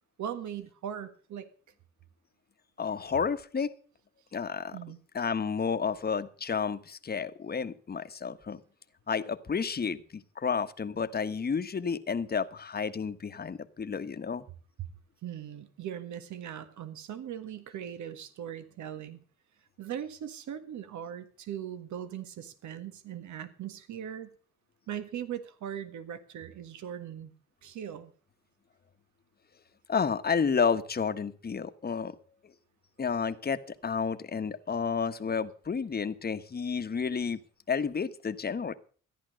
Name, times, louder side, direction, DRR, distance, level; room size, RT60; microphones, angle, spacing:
voice 1, 0.2-1.5 4.7-5.0 14.8-14.9 15.2-19.2 19.8-24.3 24.9-27.3 27.6-28.1, right 9 dB, 70° right, 12 dB, 1.6 m, -39 dB
voice 2, 2.8-3.7 4.3-4.8 5.1-8.6 9.1-14.4 29.9-32.1 33.0-37.4 37.7-38.7, left 6 dB, 30° left, 10 dB, 1.2 m, -31 dB
14.0 x 10.5 x 6.4 m, 0.43 s
cardioid pair, 90°, 30 cm